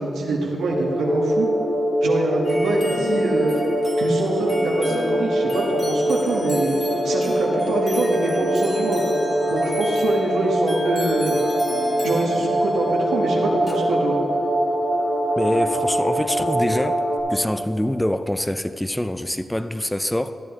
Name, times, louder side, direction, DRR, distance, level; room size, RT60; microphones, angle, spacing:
voice 1, 0.0-1.5 2.0-3.5 4.0-6.7 7.0-9.0 9.5-11.4 12.0-14.2, right 2 dB, 90° right, 1.4 m, -24 dB
sound 1, 0.7-17.2, right 1 dB, 85° left, 2.0 m, -23 dB
sound 2, 2.4-16.5, left 1 dB, 25° left, 1.6 m, -35 dB
voice 2, 15.4-17.0 17.3-20.3, left 1 dB, 10° left, 0.5 m, -24 dB
13.5 x 8.4 x 3.6 m
cardioid pair, 55°, 0 cm